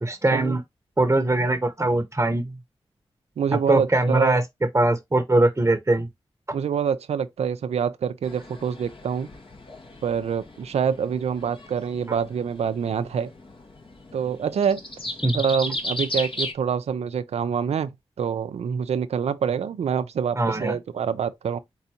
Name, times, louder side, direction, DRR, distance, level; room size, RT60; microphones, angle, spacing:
voice 1, 0.0-0.6 1.0-2.6 3.5-4.4 4.7-6.1 12.1-12.2 15.2-15.4 20.4-20.7, right 2 dB, 25° right, 1.0 m, -21 dB
voice 2, 3.4-4.4 6.5-9.3 10.0-13.3 14.1-14.8 15.3-21.6, right 7 dB, 85° right, 0.5 m, -26 dB
sound 1, 8.2-16.5, left 1 dB, 55° left, 1.6 m, -35 dB
4.5 x 4.0 x 2.8 m
cardioid pair, 40°, 11 cm